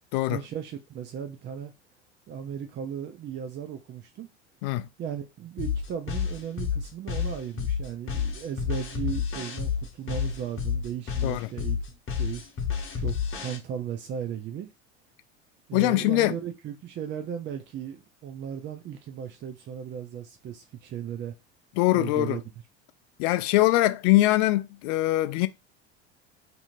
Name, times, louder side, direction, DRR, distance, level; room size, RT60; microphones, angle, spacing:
voice 1, 0.3-1.7 2.3-4.3 5.0-12.4 13.0-14.7 15.7-21.3 21.9-22.4, right 8 dB, 35° right, 0.5 m, -36 dB
sound 1, 5.6-13.6, left 7 dB, 35° left, 0.9 m, -30 dB
voice 2, 15.7-16.4 21.8-22.4 23.2-25.5, left 17 dB, 60° left, 0.4 m, -22 dB
2.7 x 2.7 x 2.6 m
hypercardioid pair, 80°, 34 cm